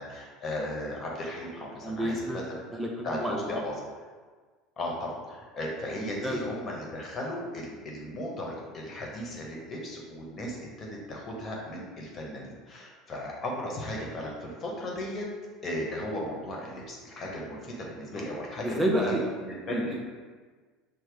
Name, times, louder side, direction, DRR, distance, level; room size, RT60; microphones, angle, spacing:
voice 1, 0.0-2.5 3.0-3.7 4.8-15.2 15.6-20.0, left 1 dB, 35° left, -2 dB, 1.1 m, -36 dB
voice 2, 1.8-2.4 2.7-3.4 6.0-6.6 18.1-18.2 18.6-19.2 19.7-20.0, right 1 dB, 10° right, -1 dB, 0.6 m, -30 dB
5.9 x 2.1 x 3.4 m, 1.5 s
hypercardioid pair, 80°, 0 cm